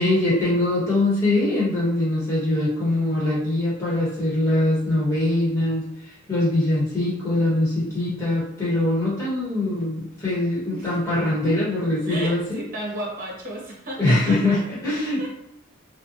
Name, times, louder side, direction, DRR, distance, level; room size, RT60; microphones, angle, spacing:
voice 1, 0.0-12.6 14.0-15.3, left 1 dB, 15° left, -8 dB, 1.2 m, -22 dB
voice 2, 12.1-14.4 15.2-15.3, right 1 dB, 40° right, -3 dB, 0.8 m, -33 dB
2.5 x 2.3 x 2.7 m, 0.81 s
head